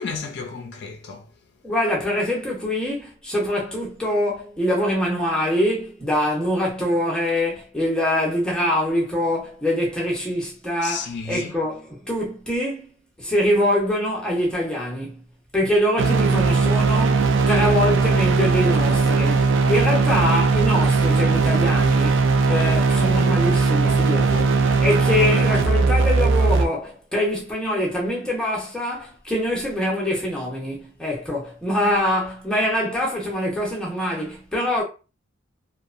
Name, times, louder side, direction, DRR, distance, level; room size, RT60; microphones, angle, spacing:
voice 1, 0.0-1.3 10.8-11.5, left 5 dB, 55° left, 0.4 m, -32 dB
voice 2, 1.6-12.9 13.2-15.2 15.5-24.5 24.8-34.8, left 1 dB, 5° left, 0.7 m, -24 dB
sound 1, 16.0-26.6, right 4 dB, 65° right, 0.4 m, -19 dB
2.8 x 2.1 x 2.4 m
head